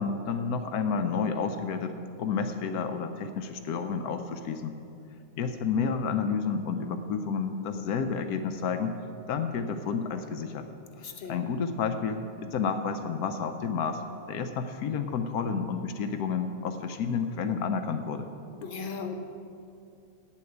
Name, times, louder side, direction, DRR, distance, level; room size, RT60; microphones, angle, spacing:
voice 1, 0.0-1.9 2.2-4.7 5.4-8.9 9.3-10.7 11.3-14.0 14.3-18.3, left 5 dB, 90° left, 7 dB, 1.2 m, -30 dB
voice 2, 11.0-11.4 18.6-19.1, left 5 dB, 40° left, 4 dB, 0.9 m, -37 dB
8.6 x 8.6 x 7.9 m, 2.7 s
omnidirectional pair, 1.5 m